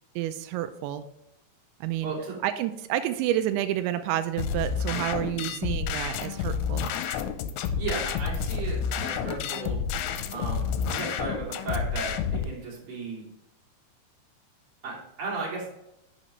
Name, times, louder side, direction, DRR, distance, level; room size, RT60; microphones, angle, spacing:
voice 1, 0.2-1.1 1.8-2.1 2.4-6.9, right 12 dB, 85° right, 10 dB, 2.8 m, -29 dB
voice 2, 2.0-2.4 5.3-5.5 7.7-9.8 10.3-13.2 14.8-15.7, right 3 dB, 35° right, -4 dB, 3.0 m, -35 dB
sound 1, 4.4-12.5, left 7 dB, 85° left, 2.8 m, -30 dB
9.9 x 6.6 x 3.1 m, 0.86 s
omnidirectional pair, 5.1 m